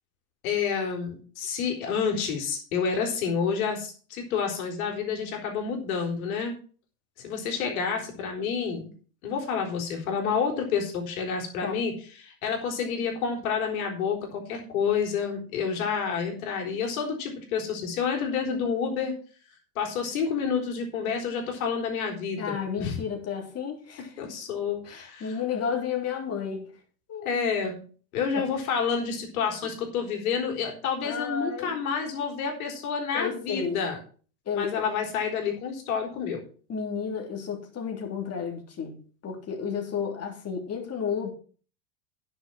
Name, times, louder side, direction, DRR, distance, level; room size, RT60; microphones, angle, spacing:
voice 1, 0.4-6.6 7.2-8.9 9.2-19.1 19.8-23.0 24.0-25.4 27.2-27.8 28.1-34.0 34.5-36.4, left 6 dB, 65° left, 2 dB, 4.0 m, -29 dB
voice 2, 22.4-24.1 24.8-26.7 27.1-27.3 31.0-31.8 33.1-33.8 34.5-34.7 36.7-39.0 39.2-41.3, left 6 dB, 30° left, 2 dB, 3.3 m, -32 dB
10.5 x 6.6 x 6.2 m, 0.40 s
hypercardioid pair, 85°, 46 cm